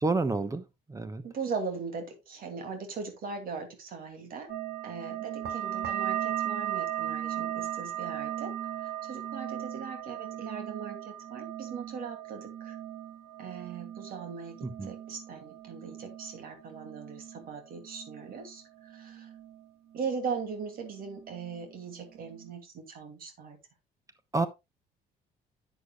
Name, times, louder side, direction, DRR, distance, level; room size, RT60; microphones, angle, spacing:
voice 1, 0.0-1.2 14.6-14.9 24.3-24.5, right 3 dB, 20° right, 1.0 m, -29 dB
voice 2, 1.2-4.5 4.8-8.5 9.0-11.0 11.3-12.7 13.4-14.6 14.8-18.6 18.9-19.3 19.9-23.6, right 5 dB, 60° right, 2.6 m, -39 dB
sound 1, 4.5-19.7 19.9-20.7 21.0-21.7 22.1-22.5, right 11 dB, 75° right, 2.8 m, -38 dB
10.5 x 8.3 x 2.4 m
cardioid pair, 110°, 17 cm